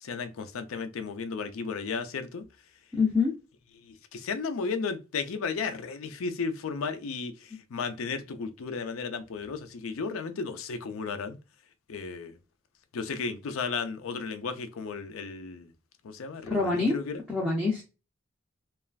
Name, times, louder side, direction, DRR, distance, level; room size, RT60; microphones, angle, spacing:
voice 1, 0.0-2.4 3.8-11.4 11.9-12.4 12.9-15.7 16.0-17.2, left 5 dB, 75° left, 0.4 m, -34 dB
voice 2, 2.9-3.3 16.4-17.0 17.3-17.8, left 4 dB, 5° left, 0.5 m, -25 dB
3.1 x 2.4 x 2.3 m
head